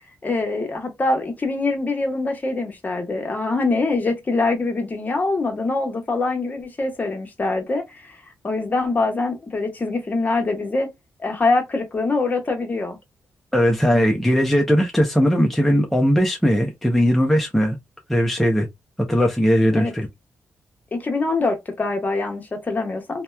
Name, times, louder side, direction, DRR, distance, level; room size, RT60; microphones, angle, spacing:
voice 1, 0.2-8.1 8.4-10.9 11.2-13.0 19.7-19.9 20.9-23.2, left 3 dB, 35° left, 0.9 m, -24 dB
voice 2, 13.5-17.8 18.1-18.7 19.1-20.1, equal, 5° left, 0.5 m, -19 dB
2.8 x 2.2 x 2.2 m
cardioid pair, 90°, 5 cm